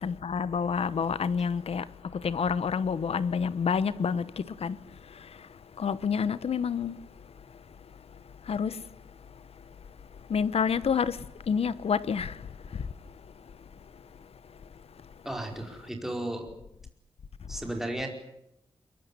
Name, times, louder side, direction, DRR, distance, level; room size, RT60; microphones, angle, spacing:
voice 1, 0.0-8.9 9.3-9.4 10.2-13.5 13.9-14.3, left 6 dB, 75° left, 1.1 m, -30 dB
voice 2, 15.2-16.5 17.5-18.1, right 1 dB, 5° right, 4.8 m, -34 dB
23.5 x 22.0 x 9.9 m
wide cardioid pair, 170°, 10 cm